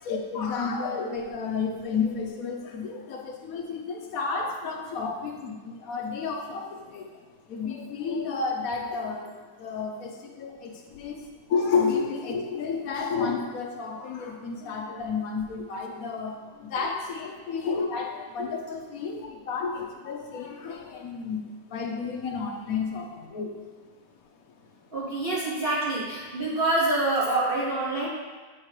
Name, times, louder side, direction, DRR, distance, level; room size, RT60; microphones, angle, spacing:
voice 1, 0.0-7.2 7.5-23.6, left 5 dB, 65° left, 1 dB, 1.0 m, -31 dB
voice 2, 24.9-28.1, right 2 dB, 40° right, -8 dB, 0.8 m, -26 dB
7.7 x 4.4 x 3.2 m, 1.4 s
omnidirectional pair, 1.9 m